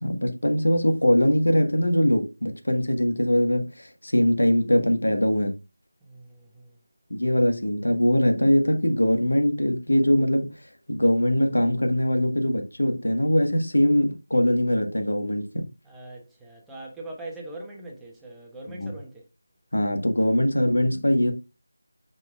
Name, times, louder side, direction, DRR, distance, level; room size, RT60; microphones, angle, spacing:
voice 1, 0.0-5.6 7.1-10.5 10.9-15.7 18.7-18.9 19.7-21.3, equal, 80° left, 1.6 m, -22 dB
voice 2, 6.0-6.8 15.8-19.2, right 2 dB, 5° right, 1.1 m, -41 dB
8.1 x 5.3 x 2.4 m
figure-of-eight pair, 170°, 0 cm